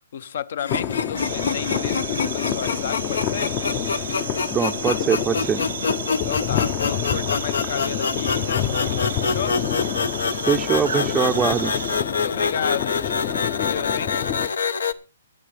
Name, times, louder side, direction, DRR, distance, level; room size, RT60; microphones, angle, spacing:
voice 1, 0.1-3.5 6.3-9.6 12.1-13.3 13.6-14.1, left 8 dB, 60° left, 0.8 m, -32 dB
sound 1, 0.6-14.9, left 5 dB, 85° left, 1.0 m, -27 dB
sound 2, 0.7-14.5, left 11 dB, 30° left, 0.6 m, -28 dB
sound 3, 1.2-12.0, right 7 dB, 70° right, 1.0 m, -34 dB
voice 2, 4.5-5.6 10.5-11.7, right 7 dB, 10° right, 0.6 m, -22 dB
24.0 x 8.3 x 3.4 m
hypercardioid pair, 150°, 0 cm